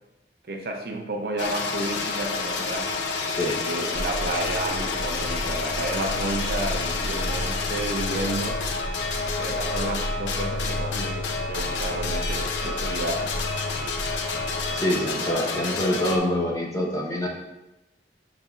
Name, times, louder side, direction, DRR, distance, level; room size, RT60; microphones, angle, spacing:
voice 1, 0.5-2.9 3.6-8.6 9.4-13.3, right 2 dB, 60° right, 2 dB, 0.5 m, -31 dB
sound 1, 1.4-16.2, left 4 dB, 85° left, 0.5 m, -29 dB
voice 2, 3.3-3.6 14.7-17.3, left 1 dB, 20° left, -2 dB, 0.7 m, -25 dB
sound 2, 3.9-14.8, left 1 dB, 60° left, 1.2 m, -33 dB
6.4 x 3.2 x 2.4 m, 0.99 s
head